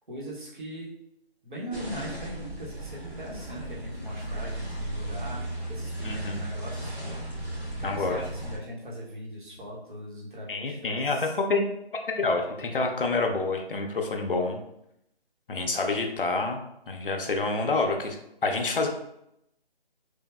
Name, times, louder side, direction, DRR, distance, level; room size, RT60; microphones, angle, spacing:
voice 1, 0.1-0.9 1.4-11.3, equal, 50° right, -5 dB, 0.8 m, -40 dB
sound 1, 1.7-8.6, right 1 dB, 85° right, 1.4 m, -35 dB
voice 2, 6.0-6.4 7.8-8.2 10.5-11.7 12.2-14.6 15.5-16.6 16.9-18.2 18.4-18.9, left 3 dB, 60° left, 3 dB, 0.5 m, -27 dB
3.2 x 2.0 x 2.2 m, 0.79 s
figure-of-eight pair, 180°, 31 cm